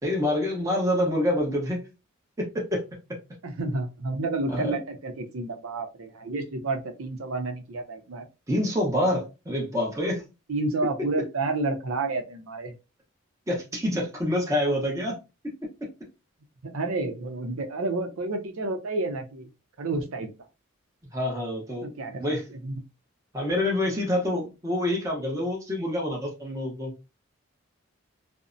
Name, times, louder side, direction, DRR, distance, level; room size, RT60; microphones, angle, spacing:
voice 1, 0.0-1.9 2.4-2.8 4.5-4.8 8.5-10.3 13.5-15.1 15.4-15.9 21.1-21.9 22.2-22.4 23.3-26.9, left 1 dB, 15° right, 0.7 m, -27 dB
voice 2, 3.4-8.2 10.5-12.7 16.6-19.5 19.8-20.3 21.8-22.2 22.5-22.8, right 2 dB, 85° right, 0.6 m, -30 dB
2.6 x 2.0 x 2.5 m
head